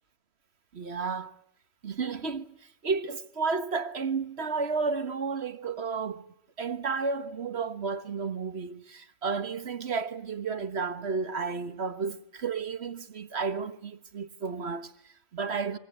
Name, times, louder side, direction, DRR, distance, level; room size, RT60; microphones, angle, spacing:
voice 1, 0.7-1.3 1.8-6.2 6.6-15.8, right 5 dB, 55° right, 1.5 m, -32 dB
26.5 x 23.5 x 8.2 m
omnidirectional pair, 1.4 m